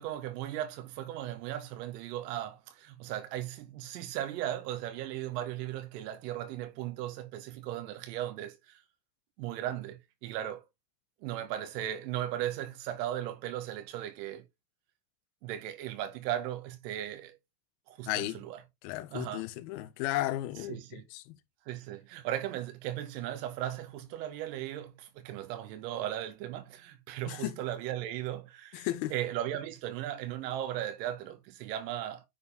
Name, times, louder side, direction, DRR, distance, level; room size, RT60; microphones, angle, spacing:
voice 1, 0.0-8.8 9.4-10.6 11.2-14.4 15.4-17.4 17.9-18.6 19.1-19.5 20.7-21.0 21.7-32.3, right 12 dB, 80° right, 2.0 m, -37 dB
voice 2, 18.1-18.4 18.8-21.4 27.3-27.6 28.7-29.1, left 15 dB, 60° left, 1.3 m, -34 dB
9.5 x 4.6 x 3.7 m
cardioid pair, 170°, 49 cm